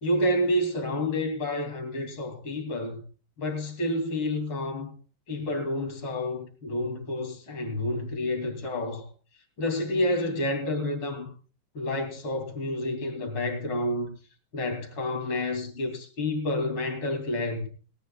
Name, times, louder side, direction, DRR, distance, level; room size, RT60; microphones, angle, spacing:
voice 1, 0.0-3.0 3.4-4.9 5.3-9.1 9.6-11.3 11.8-14.1 14.5-17.7, left 1 dB, 85° left, 3.7 m, -29 dB
18.5 x 17.5 x 2.3 m
omnidirectional pair, 2.3 m